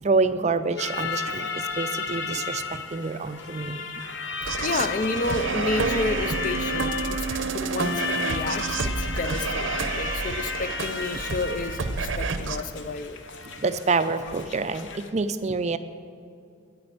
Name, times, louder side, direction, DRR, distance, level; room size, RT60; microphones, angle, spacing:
voice 1, 0.0-3.8 13.4-15.8, right 4 dB, 35° right, 11 dB, 0.4 m, -27 dB
sound 1, 0.8-15.1, left 5 dB, 60° left, 0.8 m, -34 dB
sound 2, 4.4-12.6, right 4 dB, 65° right, 0.7 m, -29 dB
voice 2, 4.6-13.2, left 3 dB, 40° left, 11 dB, 0.5 m, -31 dB
9.7 x 9.4 x 7.7 m, 2.4 s
head